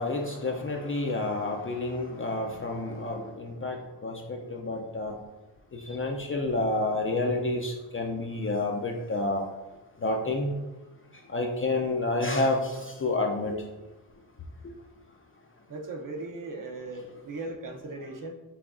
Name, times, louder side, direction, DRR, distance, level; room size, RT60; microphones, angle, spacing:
voice 1, 0.0-5.1 5.7-9.4 10.0-10.5 11.3-13.5, left 2 dB, 30° left, 2 dB, 0.4 m, -29 dB
voice 2, 15.7-18.3, right 2 dB, 45° right, 3 dB, 0.6 m, -38 dB
5.9 x 3.3 x 2.5 m, 1.1 s
cardioid pair, 95°, 49 cm